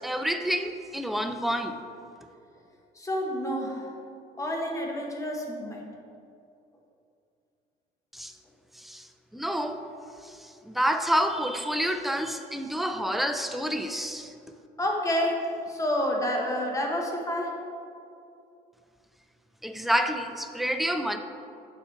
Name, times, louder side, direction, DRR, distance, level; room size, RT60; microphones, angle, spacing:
voice 1, 0.0-1.8 8.1-8.3 8.7-9.9 10.2-14.3 19.6-21.2, equal, ahead, 7 dB, 0.4 m, -28 dB
voice 2, 2.9-3.9 4.4-5.9 14.8-17.5, equal, 20° left, 0 dB, 1.0 m, -29 dB
6.7 x 4.3 x 4.5 m, 2.5 s
cardioid pair, 110°, 17 cm